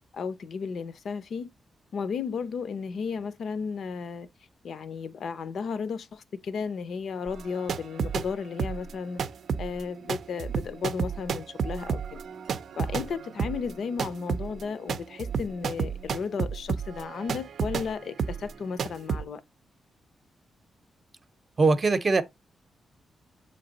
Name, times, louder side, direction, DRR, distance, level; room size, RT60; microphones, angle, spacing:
voice 1, 0.1-1.5 1.9-4.3 4.6-9.2 9.6-12.2 12.8-19.4, left 5 dB, 60° left, 0.6 m, -34 dB
sound 1, 7.3-8.3 8.6-17.9 18.2-18.5 18.8-19.2, right 6 dB, 65° right, 0.5 m, -31 dB
voice 2, 21.6-22.2, right 3 dB, 30° right, 0.7 m, -21 dB
7.7 x 3.3 x 3.9 m
cardioid pair, 125°, 0 cm